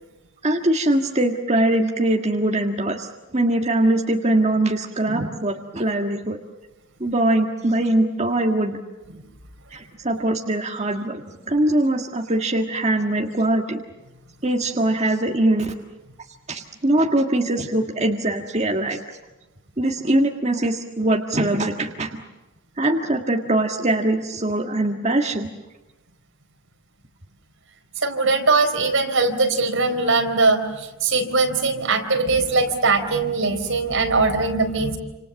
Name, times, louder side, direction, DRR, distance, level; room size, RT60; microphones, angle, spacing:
voice 1, 0.4-6.4 7.0-8.8 9.7-13.8 14.4-16.0 16.5-19.2 19.8-22.2 22.8-25.5, right 1 dB, 30° right, 2 dB, 1.7 m, -22 dB
voice 2, 28.0-35.0, right 3 dB, 70° right, 4 dB, 4.3 m, -21 dB
29.0 x 27.0 x 7.1 m, 1.1 s
head